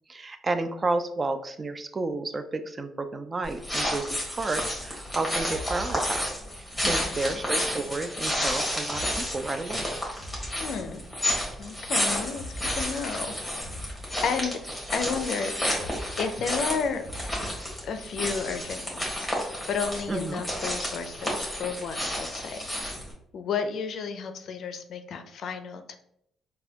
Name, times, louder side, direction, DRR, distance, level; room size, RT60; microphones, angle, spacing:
voice 1, 0.1-6.4 6.8-9.9 20.1-20.4, right 3 dB, 30° right, 9 dB, 0.3 m, -31 dB
sound 1, 3.4-23.1, equal, 5° left, 1.3 m, -31 dB
sound 2, 4.2-4.4 5.4-7.9 8.8-11.4 12.2-14.8 15.7-18.2, equal, 75° right, 0.9 m, -43 dB
voice 2, 6.8-7.4 10.6-11.0 11.6-12.4 12.8-13.3 14.2-14.6 14.9-15.5 16.2-17.0 17.8-19.3 19.7-22.7 23.3-25.9, left 6 dB, 70° left, 8 dB, 0.4 m, -32 dB
4.0 x 2.2 x 2.8 m, 0.73 s
cardioid pair, 90°, 0 cm